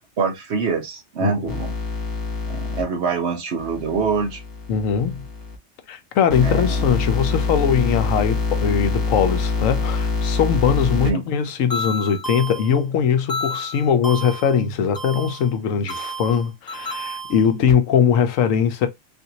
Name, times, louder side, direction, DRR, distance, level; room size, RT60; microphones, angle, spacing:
voice 1, 0.2-1.7 2.5-4.4 6.4-6.9 11.0-11.2, right 5 dB, 60° right, 1.1 m, -25 dB
voice 2, 1.2-1.5 4.7-5.2 5.9-18.9, left 7 dB, 80° left, 1.1 m, -21 dB
sound 1, 1.5-2.8 3.6-5.6 6.3-11.1 11.7-12.8 13.3-14.6 14.9-15.5 15.9-17.7, left 3 dB, 20° left, 0.6 m, -26 dB
3.6 x 2.6 x 2.8 m
omnidirectional pair, 1.3 m